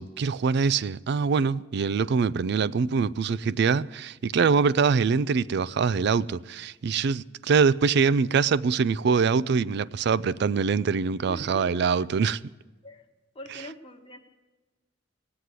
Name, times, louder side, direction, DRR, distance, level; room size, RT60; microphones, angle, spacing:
voice 1, 0.0-12.4, right 5 dB, 60° right, 0.4 m, -24 dB
voice 2, 11.3-11.9 12.8-13.1 13.3-14.2, left 1 dB, 30° left, 1.1 m, -43 dB
19.0 x 7.8 x 8.2 m
head